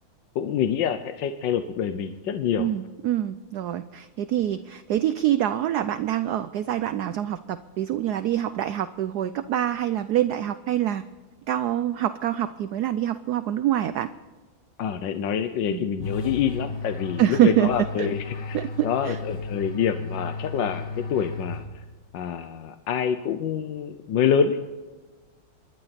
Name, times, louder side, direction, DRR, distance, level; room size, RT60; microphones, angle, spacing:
voice 1, 0.3-2.7 14.8-18.6 18.8-21.6 22.1-24.6, left 8 dB, 70° left, 8 dB, 1.4 m, -26 dB
voice 2, 2.6-11.0 11.5-14.1 15.7-15.8 17.2-18.1 18.5-19.2, right 12 dB, 70° right, 12 dB, 1.0 m, -25 dB
sound 1, 16.0-22.1, left 3 dB, 35° left, 1.0 m, -34 dB
28.0 x 12.0 x 4.2 m, 1.3 s
omnidirectional pair, 2.2 m